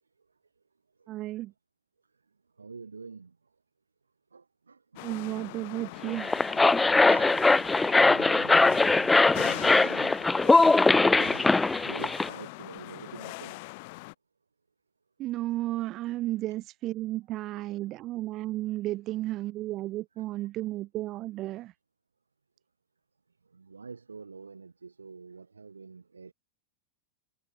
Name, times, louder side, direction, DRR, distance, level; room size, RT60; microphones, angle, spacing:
voice 1, 1.1-1.5 5.0-6.4 15.2-21.7, right 16 dB, 35° right, 0.7 m, -33 dB
voice 2, 2.6-3.4 4.3-5.1 7.1-7.4 8.1-11.5 11.8-13.6 23.5-26.3, right 4 dB, 75° right, 4.2 m, -46 dB
sound 1, 5.0-14.1, left 25 dB, 50° left, 1.0 m, -42 dB
sound 2, 6.1-12.3, left 3 dB, 10° left, 0.3 m, -21 dB
figure-of-eight pair, 90°, 0 cm